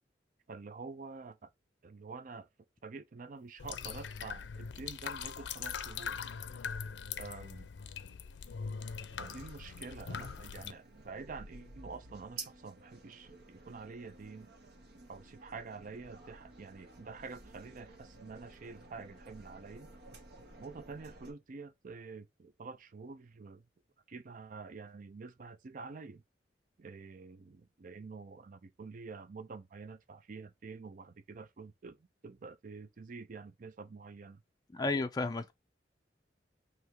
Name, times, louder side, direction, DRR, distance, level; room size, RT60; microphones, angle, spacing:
voice 1, 0.5-1.5 1.8-2.5 2.8-6.2 7.1-7.7 9.2-14.5 15.1-19.9 20.5-23.6 24.1-26.2 26.8-34.4, right 4 dB, 50° right, 0.5 m, -47 dB
sound 1, 3.6-10.7, left 6 dB, 85° left, 0.5 m, -41 dB
sound 2, 8.9-21.3, right 3 dB, 65° right, 0.9 m, -53 dB
voice 2, 34.7-35.5, left 3 dB, 20° left, 0.4 m, -32 dB
3.5 x 2.8 x 4.4 m
head